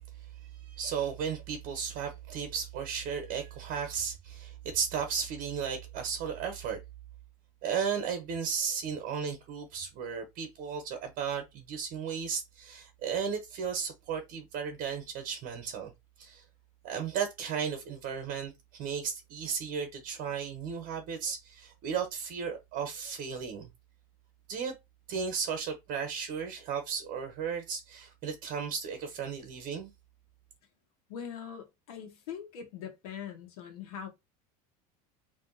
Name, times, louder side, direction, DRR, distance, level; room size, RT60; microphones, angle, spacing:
voice 1, 0.6-6.8 7.6-15.9 16.2-16.4 16.8-23.7 24.5-24.7 25.1-29.9, right 6 dB, 50° right, 0.9 m, -35 dB
voice 2, 31.1-34.1, left 8 dB, 85° left, 1.0 m, -42 dB
2.6 x 2.4 x 3.8 m
supercardioid pair, 115°, 19 cm